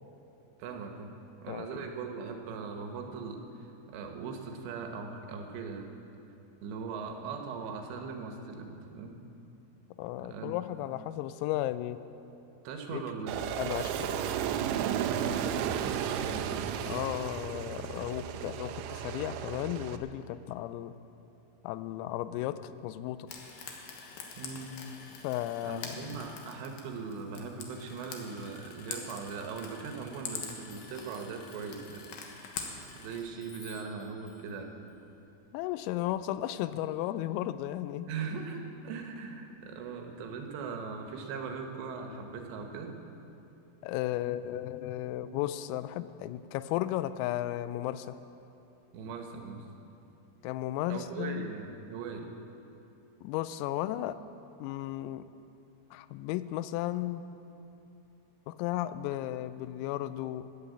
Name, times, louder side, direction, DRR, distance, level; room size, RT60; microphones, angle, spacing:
voice 1, 0.6-1.1 1.4-5.9 6.6-9.2 10.2-10.5 12.6-13.5 14.8-16.6 22.3-22.4 24.4-24.7 25.6-32.1 32.9-34.7 38.1-42.9 48.9-49.7 50.9-52.3, right 5 dB, 70° right, 4 dB, 2.9 m, -40 dB
voice 2, 1.5-1.9 10.0-12.0 12.9-13.0 13.6-14.2 16.9-20.9 21.6-23.3 25.2-26.2 35.5-38.1 43.8-48.2 50.4-51.5 53.2-54.2 54.6-55.3 55.9-57.2 58.5-60.5, left 14 dB, 90° left, 14 dB, 3.3 m, -34 dB
Aircraft, 13.3-20.0, right 9 dB, 90° right, 2.7 m, -33 dB
Frying (food), 23.3-33.2, left 5 dB, 70° left, 2.2 m, -45 dB
Chime, 30.2-36.1, left 3 dB, 45° left, 2.9 m, -58 dB
14.0 x 10.0 x 8.4 m, 2.9 s
omnidirectional pair, 5.9 m